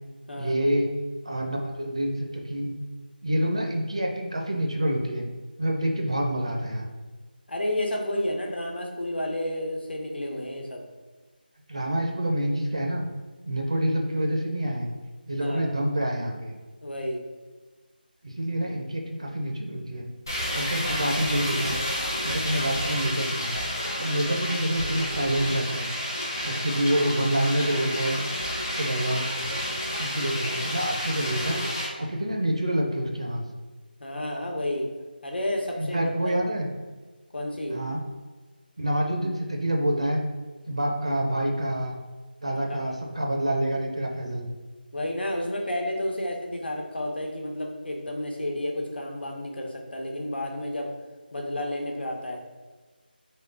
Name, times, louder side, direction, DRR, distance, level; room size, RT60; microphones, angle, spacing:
voice 1, 0.4-0.9 1.2-2.7 3.2-5.3 5.6-6.9 11.7-13.0 13.5-14.9 15.3-16.5 18.2-20.0 20.5-21.8 22.2-23.5 24.0-25.9 26.4-28.2 28.6-29.4 30.0-31.6 32.0-33.4 35.8-36.7 37.7-38.0 38.8-40.2 40.7-42.0 42.4-44.5, right 1 dB, 35° right, 2 dB, 0.5 m, -27 dB
voice 2, 7.5-10.9 15.4-15.7 16.8-17.2 24.3-24.4 34.0-34.9 35.2-36.4 37.3-37.8 42.9-43.0 44.9-50.9 51.3-52.4, left 1 dB, 80° left, 1 dB, 1.2 m, -31 dB
sound 1, 20.3-31.9, equal, 20° left, 0.7 m, -30 dB
3.7 x 3.5 x 3.8 m, 1.3 s
figure-of-eight pair, 180°, 5 cm